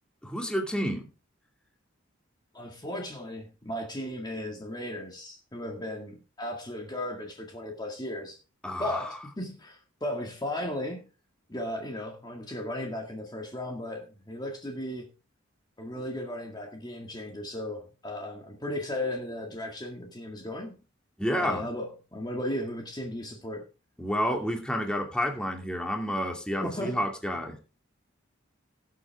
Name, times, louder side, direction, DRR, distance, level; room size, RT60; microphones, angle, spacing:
voice 1, 0.2-1.0 8.6-9.2 21.2-21.6 24.0-27.6, equal, 5° left, 2.4 m, -30 dB
voice 2, 2.5-8.4 8.8-11.1 11.5-15.1 15.8-20.8 21.4-23.6 26.6-27.0, left 1 dB, 20° left, 2.0 m, -36 dB
17.5 x 7.6 x 3.5 m
head